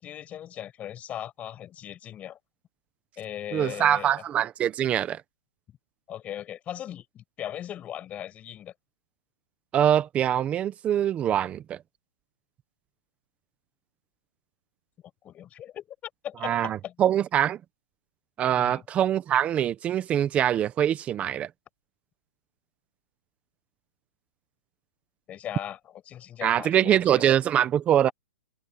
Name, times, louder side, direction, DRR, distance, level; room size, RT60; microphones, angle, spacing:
voice 1, 0.0-2.4 3.2-4.2 6.1-8.7 15.2-16.9 18.6-18.8 25.3-25.8 26.1-27.2, left 11 dB, 15° left, 6.5 m, -38 dB
voice 2, 3.5-5.2 9.7-11.8 16.4-17.6 18.4-21.5 26.4-28.1, right 10 dB, 15° right, 1.1 m, -24 dB
open air
hypercardioid pair, 155°, 8 cm